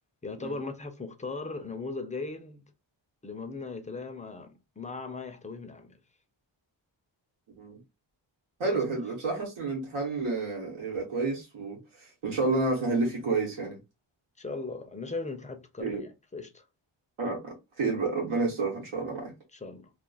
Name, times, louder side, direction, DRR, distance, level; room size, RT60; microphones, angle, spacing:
voice 1, 0.2-2.6 3.2-6.0 8.6-8.8 14.4-16.7 19.5-19.9, left 3 dB, 15° left, 0.4 m, -38 dB
voice 2, 8.6-13.8 15.8-16.0 17.2-19.3, right 3 dB, 85° right, 1.1 m, -30 dB
2.4 x 2.4 x 3.9 m
wide cardioid pair, 150°, 48 cm